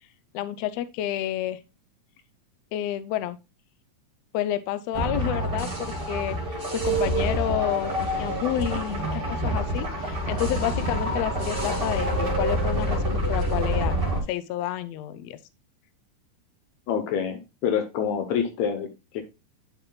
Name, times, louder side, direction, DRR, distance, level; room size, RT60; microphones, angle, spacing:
voice 1, 0.3-1.6 2.7-3.4 4.3-14.0 14.3-15.4, left 12 dB, 85° left, 1.5 m, -30 dB
sound 1, 4.9-14.2, right 1 dB, 20° right, 2.2 m, -27 dB
voice 2, 16.9-19.2, left 7 dB, 70° left, 2.1 m, -27 dB
9.5 x 5.7 x 2.3 m
omnidirectional pair, 3.6 m